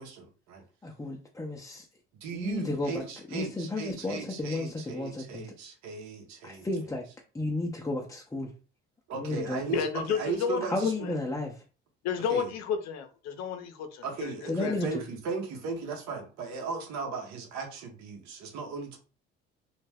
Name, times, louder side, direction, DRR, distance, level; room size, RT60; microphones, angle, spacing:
voice 1, 0.0-0.6 2.2-6.7 9.1-11.1 12.3-12.5 14.0-19.0, right 5 dB, 65° right, 0.9 m, -37 dB
voice 2, 0.8-1.8 2.3-3.0 3.3-5.4 6.4-7.0 7.3-8.5 9.1-9.6 10.7-11.5 14.5-14.9, left 2 dB, 10° left, 0.5 m, -32 dB
voice 3, 9.7-10.6 11.0-11.2 12.0-14.3 14.6-14.8, left 7 dB, 65° left, 0.7 m, -31 dB
2.3 x 2.1 x 3.3 m
hypercardioid pair, 60°, 29 cm